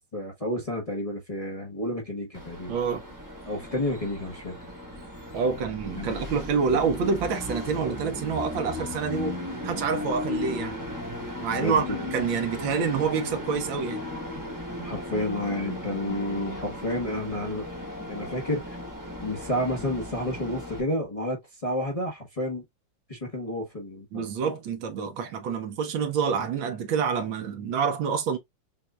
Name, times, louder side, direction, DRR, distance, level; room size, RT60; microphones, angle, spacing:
voice 1, 0.1-2.8 3.5-4.6 6.0-6.3 11.5-12.0 14.8-17.7 18.1-18.8 19.2-22.6 23.1-24.3, left 1 dB, 25° left, 1.0 m, -30 dB
Train, 2.3-20.8, left 1 dB, 10° right, 1.1 m, -36 dB
voice 2, 2.7-3.0 5.3-9.4 9.6-10.8 11.4-11.8 12.1-14.0 24.1-28.4, right 5 dB, 80° right, 1.7 m, -27 dB
5.7 x 2.7 x 2.4 m
omnidirectional pair, 2.1 m